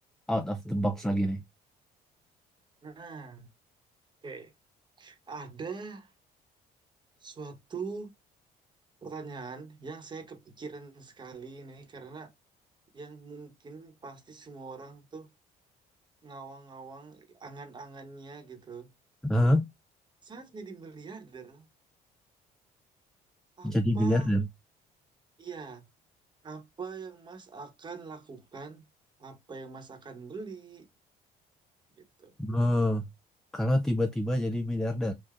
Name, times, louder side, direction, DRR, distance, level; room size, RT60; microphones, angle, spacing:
voice 1, 0.3-1.4 19.2-19.7 23.6-24.5 32.4-33.1 33.5-35.1, equal, 5° left, 0.3 m, -26 dB
voice 2, 2.8-3.5 4.2-4.5 5.0-6.1 7.2-8.1 9.0-12.3 12.9-15.3 16.2-18.9 20.2-21.7 23.6-24.4 25.4-25.8 26.4-28.8 29.2-30.9 32.0-32.3, right 4 dB, 25° right, 0.9 m, -43 dB
3.5 x 2.6 x 2.3 m
cardioid pair, 110°, 17 cm